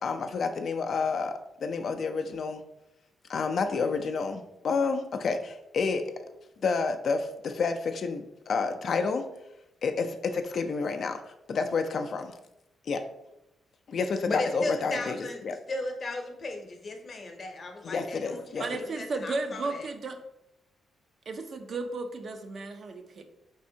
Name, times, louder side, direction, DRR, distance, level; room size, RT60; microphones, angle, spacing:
voice 1, 0.0-2.6 3.3-6.1 6.6-9.2 9.8-11.2 11.5-12.3 12.9-13.0 13.9-15.2 15.4-15.6 17.8-18.6, left 4 dB, 60° left, 6 dB, 0.3 m, -29 dB
voice 2, 14.2-15.4 15.7-19.9, left 2 dB, 45° left, 4 dB, 0.7 m, -36 dB
voice 3, 18.6-20.2 21.3-23.2, right 3 dB, 55° right, 7 dB, 0.4 m, -34 dB
4.2 x 3.4 x 2.7 m, 0.88 s
cardioid pair, 95°, 0 cm